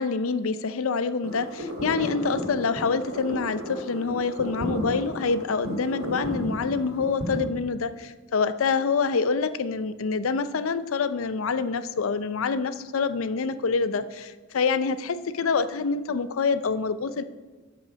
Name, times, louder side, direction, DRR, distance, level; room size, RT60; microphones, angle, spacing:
voice 1, 0.0-17.2, left 4 dB, 80° left, 12 dB, 0.5 m, -26 dB
sound 1, 1.2-7.4, equal, 90° right, 2.6 m, -34 dB
12.0 x 5.5 x 5.1 m, 1.3 s
head